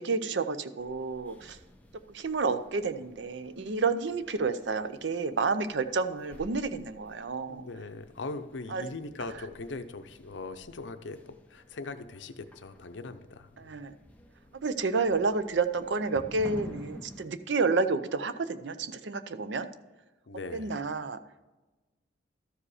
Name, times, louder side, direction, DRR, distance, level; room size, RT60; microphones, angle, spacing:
voice 1, 0.0-1.6 2.1-7.6 8.7-8.8 13.6-13.9 14.6-19.7 20.5-21.2, right 4 dB, 70° right, 11 dB, 0.5 m, -30 dB
sound 1, 0.8-17.3, equal, 10° left, 0.7 m, -51 dB
voice 2, 7.5-13.8 20.3-20.8, left 3 dB, 75° left, 10 dB, 0.6 m, -40 dB
12.5 x 4.9 x 4.9 m, 1.2 s
head